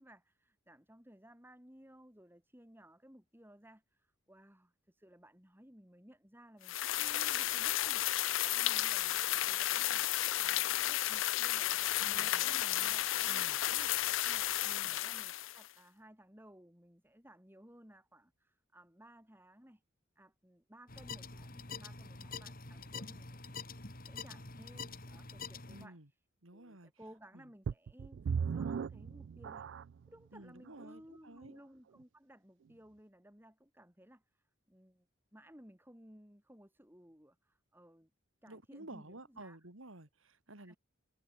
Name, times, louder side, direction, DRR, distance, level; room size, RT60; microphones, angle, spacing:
voice 1, 0.0-10.1 10.4-19.8 20.1-26.2 26.5-29.7 30.1-35.1 35.3-38.1 38.4-39.6 40.6-40.8, right 1 dB, 10° right, 4.9 m, -59 dB
sound 1, 6.7-15.7, left 14 dB, 70° left, 0.5 m, -33 dB
voice 2, 12.0-12.9 13.3-13.5 14.6-15.0 25.7-26.1 26.4-26.9 27.3-27.4 30.3-31.5 38.5-40.8, right 2 dB, 80° right, 3.2 m, -53 dB
sound 2, 20.9-25.9, left 4 dB, 45° left, 3.5 m, -46 dB
sound 3, 27.7-30.1 30.7-30.8 31.4-31.5, right 6 dB, 60° right, 0.3 m, -37 dB
head